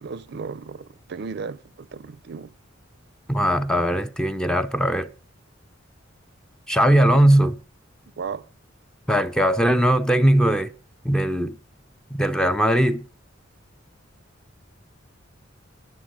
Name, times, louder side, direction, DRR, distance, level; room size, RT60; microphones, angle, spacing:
voice 1, 0.0-2.5 8.2-8.5, right 5 dB, 55° right, 0.5 m, -35 dB
voice 2, 3.3-5.1 6.7-7.6 9.1-10.7 11.0-11.6 12.1-13.0, right 1 dB, 5° left, 0.5 m, -19 dB
10.0 x 6.5 x 7.4 m
head